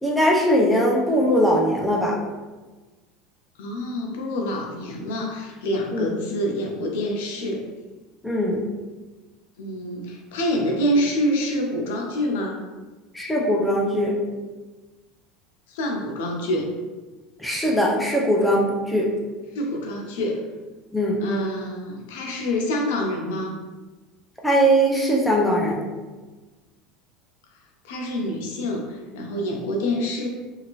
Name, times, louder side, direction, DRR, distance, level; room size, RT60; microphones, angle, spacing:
voice 1, 0.0-2.2 5.9-6.1 8.2-8.6 13.1-14.1 17.4-19.1 20.9-21.2 24.4-25.9, equal, 5° left, -2 dB, 0.6 m, -20 dB
voice 2, 3.6-7.7 9.6-12.6 15.7-16.7 19.5-20.4 21.2-23.5 27.8-30.3, equal, 85° left, 1 dB, 0.6 m, -26 dB
2.8 x 2.5 x 3.0 m, 1.3 s
supercardioid pair, 140°, 0 cm